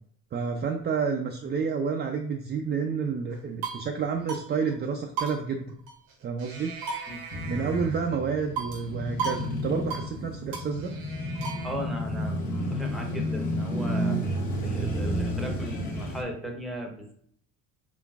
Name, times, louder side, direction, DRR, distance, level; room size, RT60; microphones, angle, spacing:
voice 1, 0.3-5.7 6.2-6.7 7.5-10.9, right 5 dB, 30° right, 3 dB, 0.4 m, -29 dB
sound 1, 3.3-3.9 4.3-4.4 4.7-4.8 5.2-6.1 6.4-8.1 8.6-8.9 9.2-9.5 9.7-10.1 10.5-11.7, right 5 dB, 90° right, 1.0 m, -35 dB
Male speech man speaking / Motorcycle / Idling, 7.3-16.2, equal, 60° left, 1.2 m, -31 dB
voice 2, 11.6-14.2 14.6-17.1, equal, ahead, 2 dB, 0.8 m, -37 dB
3.9 x 3.3 x 2.3 m, 0.66 s
cardioid pair, 95°, 34 cm